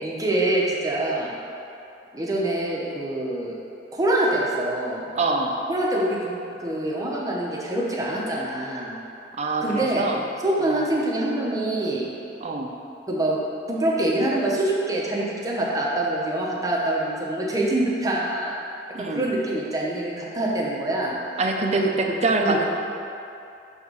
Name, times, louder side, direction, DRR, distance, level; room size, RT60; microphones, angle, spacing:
voice 1, 0.0-1.3 2.1-3.5 3.9-5.1 5.7-6.3 6.6-8.9 9.6-10.1 10.4-12.1 13.1-13.4 13.7-18.6 19.0-21.1 21.7-21.8 22.4-22.6, right 1 dB, 20° right, -4 dB, 0.9 m, -25 dB
voice 2, 5.1-5.6 9.4-10.2 10.6-10.9 12.4-12.7 18.9-19.3 21.4-22.7, right 2 dB, 35° right, 2 dB, 0.5 m, -25 dB
6.6 x 3.5 x 5.4 m, 2.7 s
head